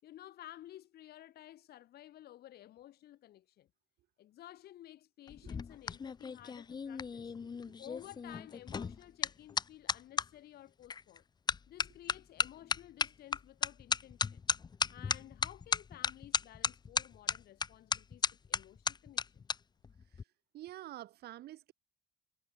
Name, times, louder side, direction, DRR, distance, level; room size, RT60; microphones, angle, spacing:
voice 1, 0.0-3.7 4.2-7.3 7.8-11.2 11.7-14.4 14.9-19.5, left 13 dB, 70° left, 7.0 m, -54 dB
sound 1, 5.3-10.3 10.9-11.2 11.5-19.6 19.8-20.2, left 6 dB, 25° left, 0.6 m, -35 dB
voice 2, 7.4-7.7 20.1-20.2 20.5-21.7, right 14 dB, 70° right, 4.9 m, -48 dB
cardioid pair, 110°, 17 cm